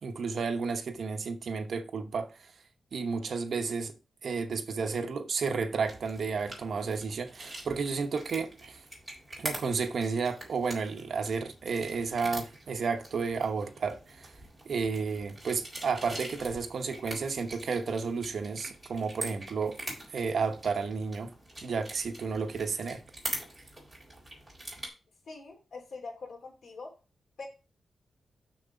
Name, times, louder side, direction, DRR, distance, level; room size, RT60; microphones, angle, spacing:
voice 1, 0.0-2.3 2.9-3.9 4.2-8.8 9.4-14.3 14.6-21.3 21.6-23.0, right 5 dB, 60° right, 1.0 m, -32 dB
sound 1, 5.8-24.9, right 1 dB, 5° right, 4.0 m, -44 dB
voice 2, 25.3-26.9 27.4-27.5, left 3 dB, 70° left, 3.7 m, -43 dB
6.6 x 6.4 x 5.1 m
wide cardioid pair, 160°, 0 cm